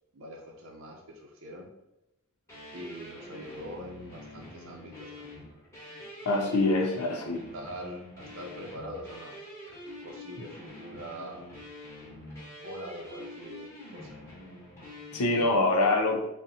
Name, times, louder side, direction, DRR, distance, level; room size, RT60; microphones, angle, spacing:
voice 1, 0.1-1.7 2.7-5.5 6.7-6.9 7.5-9.5 10.0-11.4 12.6-14.2, equal, 60° right, 1 dB, 0.6 m, -43 dB
sound 1, 2.5-15.6, left 1 dB, 10° left, 1.3 m, -46 dB
voice 2, 6.2-7.4 15.1-16.3, left 2 dB, 85° left, 2 dB, 0.6 m, -25 dB
5.1 x 2.1 x 2.8 m, 0.90 s
head